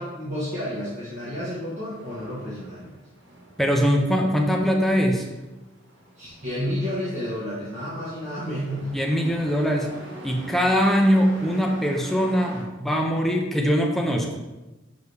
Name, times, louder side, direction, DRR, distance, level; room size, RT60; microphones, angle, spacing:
voice 1, 0.0-2.9 6.2-8.9, equal, 40° right, -9 dB, 1.6 m, -31 dB
Truck, 1.6-12.6, right 1 dB, 65° right, 1.5 m, -44 dB
voice 2, 3.6-5.3 8.9-9.9 10.2-14.4, equal, ahead, 1 dB, 0.6 m, -22 dB
6.5 x 5.4 x 3.5 m, 1.1 s
head